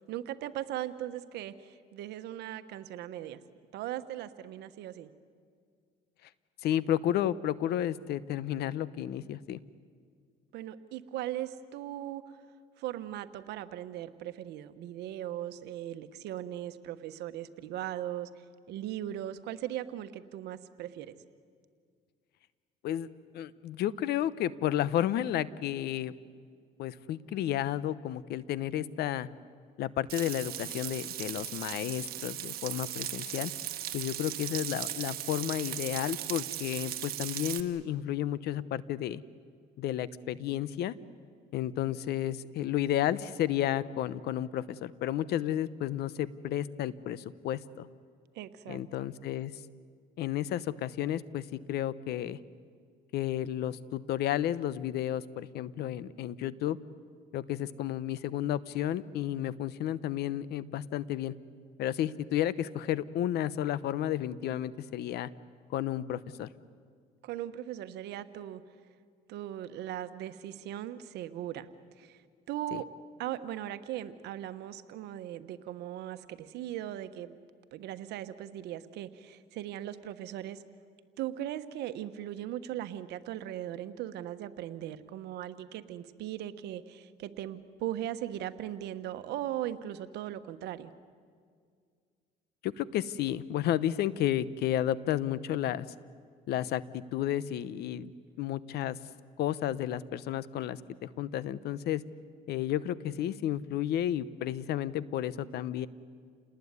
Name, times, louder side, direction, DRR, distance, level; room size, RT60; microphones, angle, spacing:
voice 1, 0.1-3.4 3.7-5.1 10.5-12.4 12.8-18.3 18.7-21.1 48.3-49.1 67.2-68.6 69.3-71.7 72.0-72.2 72.5-72.9 73.2-77.4 77.7-80.6 81.2-90.9, right 12 dB, 80° right, 11 dB, 1.3 m, -38 dB
voice 2, 6.6-9.6 22.8-23.1 23.3-26.1 26.8-29.3 29.8-33.5 33.9-39.2 39.8-40.9 41.5-47.9 48.7-49.5 50.2-52.4 53.1-56.8 57.3-61.3 61.8-65.3 65.7-66.5 72.7-72.8 92.6-95.9 96.5-98.1 98.4-99.0 99.4-102.0 102.5-105.9, left 11 dB, 75° left, 17 dB, 0.9 m, -32 dB
Frying (food), 30.1-37.6, right 12 dB, 65° right, 1.6 m, -38 dB
28.5 x 19.5 x 9.7 m, 2.1 s
cardioid pair, 110°, 17 cm